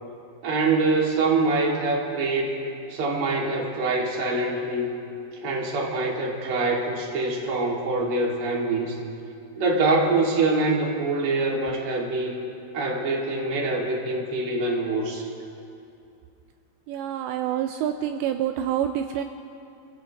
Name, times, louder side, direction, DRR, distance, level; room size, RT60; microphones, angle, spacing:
voice 1, 0.4-2.6 2.9-4.9 5.4-9.0 9.6-12.5 12.7-15.3, right 3 dB, 45° right, -2 dB, 2.1 m, -24 dB
voice 2, 16.9-19.2, right 10 dB, 90° right, 6 dB, 2.5 m, -27 dB
29.0 x 16.5 x 3.0 m, 2.6 s
omnidirectional pair, 5.7 m